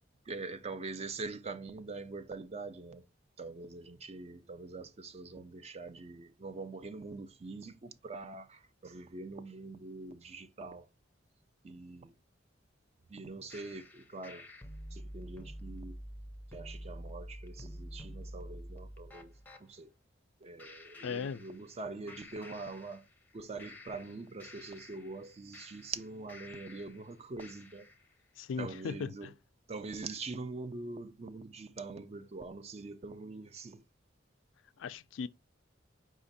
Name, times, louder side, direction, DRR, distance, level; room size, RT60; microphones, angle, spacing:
voice 1, 0.2-3.0 3.4-10.9 11.6-12.1 13.1-14.5 14.9-16.0 16.5-19.9 20.4-23.1 23.3-27.9 28.6-29.3 29.7-33.8, right 3 dB, 35° right, 0.5 m, -44 dB
sound 1, 13.5-19.6 20.6-21.8 22.1-23.3 23.6-27.0 27.4-28.0, equal, 10° left, 0.6 m, -48 dB
voice 2, 21.0-21.4 28.4-29.3 34.8-35.3, left 6 dB, 80° left, 0.4 m, -38 dB
5.0 x 2.5 x 3.9 m
head